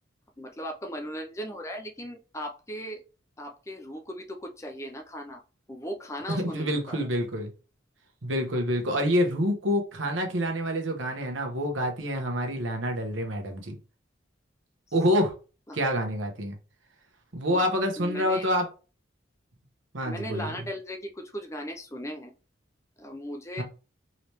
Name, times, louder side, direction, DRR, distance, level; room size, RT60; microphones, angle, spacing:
voice 1, 0.4-3.0 3.4-5.4 5.7-7.1 15.7-15.8 17.5-17.7 18.0-18.5 20.0-22.3 23.0-23.6, equal, 15° left, 3 dB, 0.5 m, -37 dB
voice 2, 6.3-7.5 8.2-13.8 14.9-15.3 15.7-16.5 17.3-18.7 19.9-20.5 23.6-23.7, equal, 75° right, 4 dB, 1.1 m, -27 dB
3.9 x 3.3 x 3.0 m, 0.33 s
head